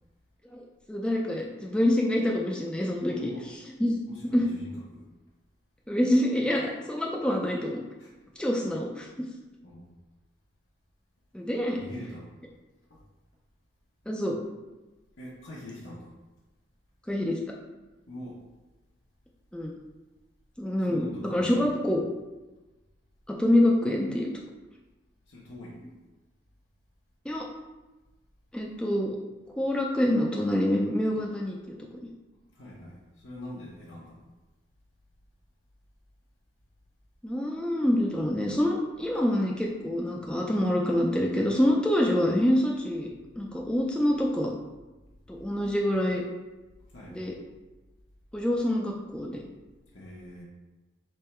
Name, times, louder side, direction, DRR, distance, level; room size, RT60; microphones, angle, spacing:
voice 1, 0.5-3.3 3.8-4.0 4.3-4.5 5.9-7.8 8.4-9.1 11.3-11.8 14.1-14.4 17.1-17.4 19.5-19.7 20.6-22.0 23.3-24.3 27.2-27.5 28.5-29.2 29.6-31.8 37.2-43.1 43.4-44.5 45.3-46.2 47.1-47.3 48.3-49.4, left 1 dB, 5° left, -2 dB, 0.3 m, -26 dB
voice 2, 3.1-3.5 4.1-5.1 8.0-8.1 9.6-9.9 11.7-12.3 12.9-13.0 15.2-16.1 18.1-18.4 20.8-21.6 25.3-25.8 32.5-34.2 46.9-47.3 49.9-50.4, left 1 dB, 85° left, -7 dB, 0.9 m, -43 dB
3.5 x 3.3 x 4.4 m, 1.1 s
head